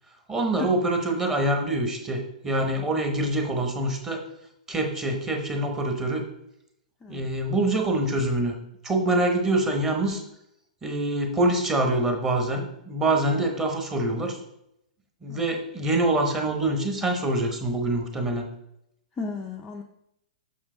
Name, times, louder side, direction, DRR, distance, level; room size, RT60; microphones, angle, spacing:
voice 1, 0.3-4.2 4.7-6.2 7.1-8.6 8.8-10.2 10.8-14.4 15.2-18.5, right 2 dB, 10° right, 3 dB, 0.9 m, -25 dB
voice 2, 19.2-19.8, left 4 dB, 10° left, 0 dB, 0.4 m, -34 dB
7.0 x 6.1 x 3.8 m, 0.79 s
hypercardioid pair, 160°, 4 cm